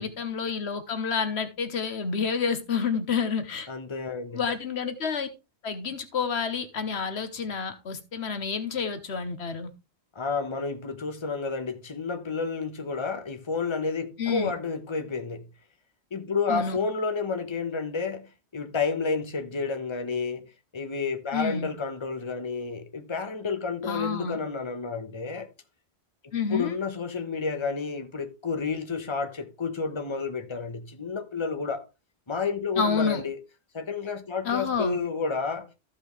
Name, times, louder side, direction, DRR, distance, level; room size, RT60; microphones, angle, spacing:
voice 1, 0.0-3.7 4.3-5.3 5.6-9.7 14.2-14.5 16.5-16.8 21.3-21.7 23.8-24.4 26.3-26.7 32.8-33.2 34.4-35.0, left 5 dB, 75° left, 1.3 m, -29 dB
voice 2, 3.7-4.4 10.1-15.4 16.1-25.5 26.5-31.8 32.3-33.4 33.7-35.7, left 4 dB, 25° left, 1.1 m, -30 dB
14.5 x 5.5 x 3.2 m
omnidirectional pair, 1.1 m